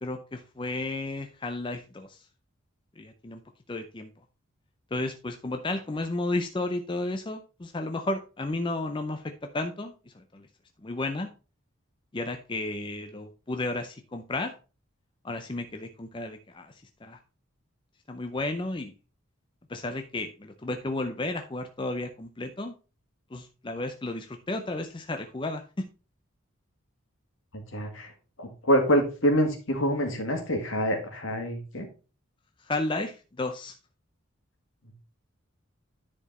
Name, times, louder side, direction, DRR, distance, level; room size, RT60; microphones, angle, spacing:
voice 1, 0.0-2.3 3.0-3.4 3.7-4.1 4.9-10.5 10.8-11.3 12.1-14.5 15.2-16.7 17.0-17.2 18.1-18.9 19.7-22.7 23.3-25.9 32.6-33.7, left 2 dB, 25° left, 6 dB, 0.5 m, -33 dB
voice 2, 27.5-28.1 28.4-31.9, equal, 65° left, 4 dB, 2.0 m, -26 dB
10.0 x 4.4 x 4.1 m, 0.34 s
head